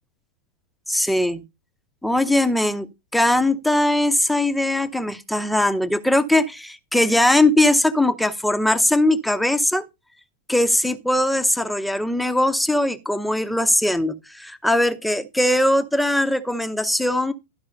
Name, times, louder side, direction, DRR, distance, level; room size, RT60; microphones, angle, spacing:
voice 1, 0.9-1.4 2.0-2.9 3.1-9.9 10.5-17.3, left 1 dB, ahead, 0.8 m, -20 dB
12.5 x 4.8 x 5.0 m
figure-of-eight pair, 90°, 0 cm